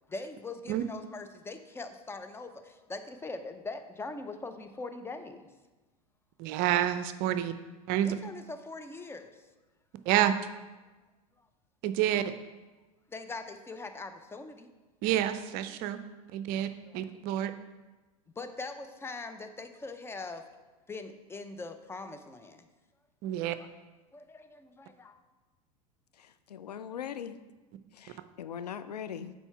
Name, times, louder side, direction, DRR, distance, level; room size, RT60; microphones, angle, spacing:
voice 1, 0.1-5.5 8.0-9.4 13.1-14.7 16.8-17.1 18.4-20.4 20.9-22.7 23.6-23.7 24.1-25.2, left 3 dB, 10° left, 8 dB, 0.6 m, -42 dB
voice 2, 6.4-7.5 7.9-8.2 10.1-10.3 11.8-12.3 15.0-16.0 16.3-16.7 16.9-17.5 23.2-23.6, right 12 dB, 50° right, 11 dB, 0.5 m, -28 dB
voice 3, 26.2-27.4 27.9-29.3, left 8 dB, 90° left, 12 dB, 0.4 m, -40 dB
7.1 x 4.5 x 4.5 m, 1.2 s
hypercardioid pair, 90°, 20 cm